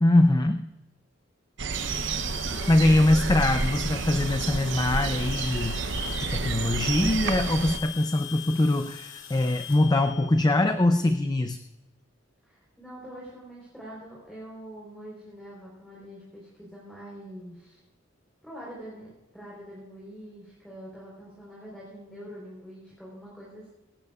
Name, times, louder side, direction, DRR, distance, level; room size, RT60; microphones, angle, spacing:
voice 1, 0.0-0.7 2.7-11.6, left 1 dB, 20° left, 7 dB, 0.5 m, -23 dB
sound 1, 1.6-7.8, right 4 dB, 65° right, 0.8 m, -30 dB
sound 2, 1.7-11.0, left 10 dB, 75° left, 2.0 m, -42 dB
voice 2, 2.5-3.2 12.4-17.8 18.4-23.7, equal, 5° left, -6 dB, 4.0 m, -44 dB
23.5 x 12.0 x 2.4 m, 1.1 s
head